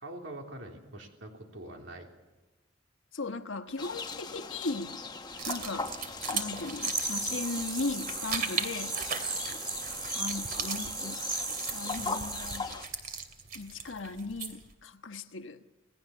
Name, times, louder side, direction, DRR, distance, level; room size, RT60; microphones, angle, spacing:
voice 1, 0.0-2.1, right 1 dB, 75° right, 2 dB, 3.4 m, -44 dB
voice 2, 3.1-5.0 5.4-6.0 6.2-9.0 10.1-11.3 11.7-12.7 13.5-15.6, left 3 dB, 80° left, 8 dB, 1.4 m, -37 dB
sound 1, 3.8-12.9, left 4 dB, 20° left, 1.1 m, -40 dB
sound 2, 5.3-14.7, right 5 dB, 50° right, 2.8 m, -39 dB
sound 3, 6.8-12.6, right 3 dB, 20° right, 6.0 m, -36 dB
27.5 x 18.0 x 7.1 m, 1.1 s
head